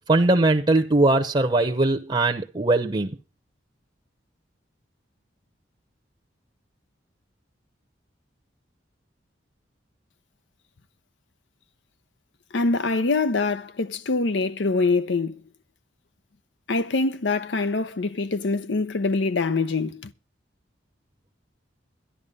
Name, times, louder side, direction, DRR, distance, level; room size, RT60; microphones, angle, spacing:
voice 1, 0.1-3.2, right 2 dB, 25° right, 0.8 m, -20 dB
voice 2, 12.5-15.4 16.7-20.1, left 3 dB, 75° left, 0.7 m, -24 dB
12.5 x 11.0 x 5.3 m
head